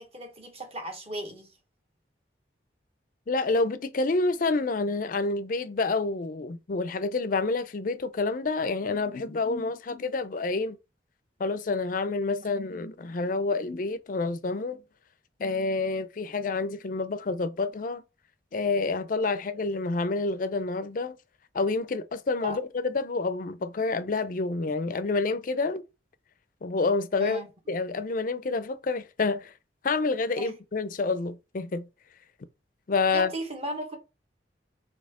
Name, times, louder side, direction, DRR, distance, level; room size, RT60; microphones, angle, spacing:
voice 1, 0.0-1.5 22.4-22.6 27.2-27.5 30.4-30.6 33.1-34.0, right 1 dB, 35° right, 1.1 m, -36 dB
voice 2, 3.3-10.8 11.4-14.8 15.4-18.0 18.5-21.2 21.5-25.8 26.6-29.5 29.8-31.9 32.9-33.3, left 3 dB, 45° left, 0.4 m, -28 dB
4.2 x 3.2 x 3.6 m
head